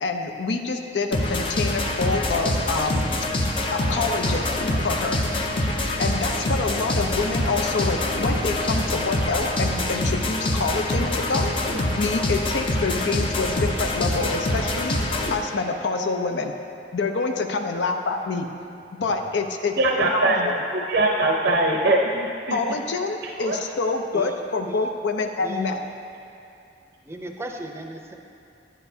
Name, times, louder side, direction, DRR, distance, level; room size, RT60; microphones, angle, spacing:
voice 1, 0.0-3.1 3.7-4.5 4.8-5.2 6.0-11.5 12.0-15.0 15.3-16.5 16.9-18.5 18.9-20.5 22.5-25.8, left 3 dB, 65° left, 4 dB, 0.5 m, -26 dB
sound 1, 1.1-15.3, left 1 dB, 30° left, 0.6 m, -25 dB
voice 2, 19.8-22.6 23.4-23.6, right 2 dB, 60° right, 0 dB, 0.7 m, -22 dB
voice 3, 25.4-25.7 27.0-28.1, right 1 dB, 15° right, 2 dB, 0.6 m, -36 dB
10.5 x 9.9 x 2.7 m, 2.6 s
head